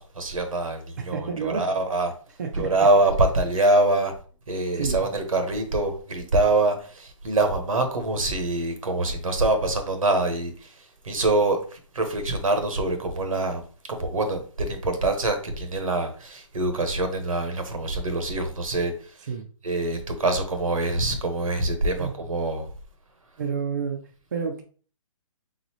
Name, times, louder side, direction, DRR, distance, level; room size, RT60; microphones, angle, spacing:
voice 1, 0.0-2.1 2.5-4.1 4.5-13.6 13.9-19.3 19.6-22.6, right 2 dB, 85° right, 1.4 m, -25 dB
voice 2, 1.0-1.6 2.4-2.9 4.7-5.0 19.3-19.5 22.0-22.1 23.4-24.0 24.3-24.6, right 6 dB, 35° right, 0.5 m, -29 dB
4.0 x 3.9 x 3.0 m
hypercardioid pair, 170°, 17 cm